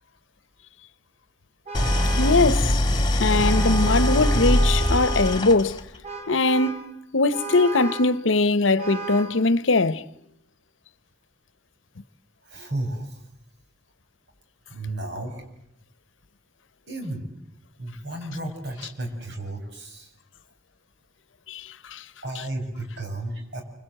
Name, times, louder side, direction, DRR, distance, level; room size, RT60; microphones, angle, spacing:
Idling, 1.7-6.0, left 1 dB, 25° left, 1.8 m, -22 dB
Vehicle horn car horn honking, 1.7-2.5 3.3-5.5 6.0-6.9 7.3-8.2 8.8-9.4, right 4 dB, 35° right, 4.3 m, -34 dB
voice 1, 2.2-2.8 3.2-5.8 6.3-10.0 21.5-22.0, left 3 dB, 90° left, 1.0 m, -21 dB
voice 2, 12.5-13.2 14.7-15.4 16.9-17.3 17.8-20.1 22.2-23.6, right 1 dB, 65° right, 7.4 m, -33 dB
29.0 x 26.0 x 7.9 m
head